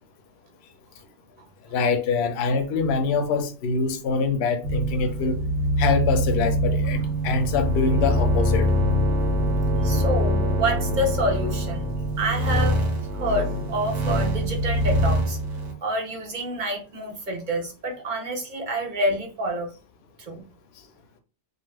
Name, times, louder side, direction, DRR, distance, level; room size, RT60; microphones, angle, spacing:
voice 1, 1.7-5.4 5.8-8.7, left 4 dB, 65° left, 0.7 m, -24 dB
sound 1, 4.6-15.7, equal, 80° right, 1.0 m, -24 dB
voice 2, 9.8-11.9 12.2-12.8 13.1-15.4 15.8-19.7 20.2-20.4, right 1 dB, 50° right, 0.6 m, -28 dB
2.4 x 2.3 x 3.2 m
omnidirectional pair, 1.3 m